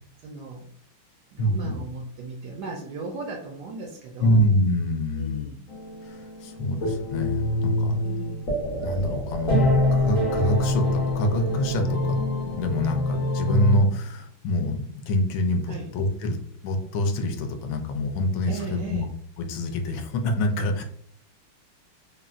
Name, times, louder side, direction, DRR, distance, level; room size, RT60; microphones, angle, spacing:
voice 1, 0.2-0.7 1.3-4.4 5.1-5.7 8.0-8.5 15.7-15.9 18.5-19.1, right 3 dB, 80° right, 1 dB, 0.9 m, -37 dB
voice 2, 1.4-1.8 4.2-5.5 6.0-8.0 8.8-12.2 12.5-16.4 16.6-19.1 19.4-20.8, left 1 dB, 75° left, 4 dB, 1.3 m, -25 dB
sound 1, 5.7-13.8, left 1 dB, 55° left, 0.9 m, -25 dB
3.9 x 2.0 x 2.4 m, 0.62 s
omnidirectional pair, 2.3 m